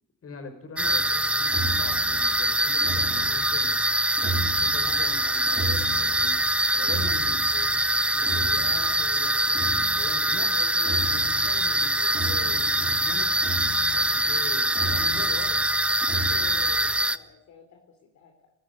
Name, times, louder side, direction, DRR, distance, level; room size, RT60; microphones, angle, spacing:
voice 1, 0.2-3.8 4.5-6.4 6.7-7.8 8.1-13.3 13.9-15.6, left 3 dB, 50° left, 8 dB, 5.2 m, -42 dB
sound 1, 0.8-17.2, right 1 dB, 5° right, 0.8 m, -24 dB
sound 2, 0.8-17.0, right 2 dB, 35° right, 5.8 m, -36 dB
voice 2, 4.6-5.2 7.2-7.4 16.1-18.5, left 5 dB, 70° left, 3 dB, 3.6 m, -49 dB
18.5 x 14.5 x 9.8 m, 0.78 s
cardioid pair, 90°, 30 cm